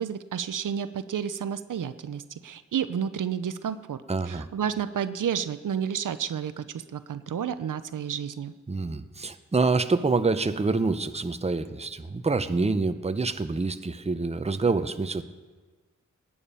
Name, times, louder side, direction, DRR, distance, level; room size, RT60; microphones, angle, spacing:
voice 1, 0.0-4.0 4.3-8.5, right 8 dB, 90° right, 12 dB, 0.6 m, -31 dB
voice 2, 4.1-4.5 8.7-15.2, right 3 dB, 20° right, 10 dB, 0.7 m, -26 dB
18.5 x 8.7 x 5.5 m, 1.4 s
wide cardioid pair, 85°, 31 cm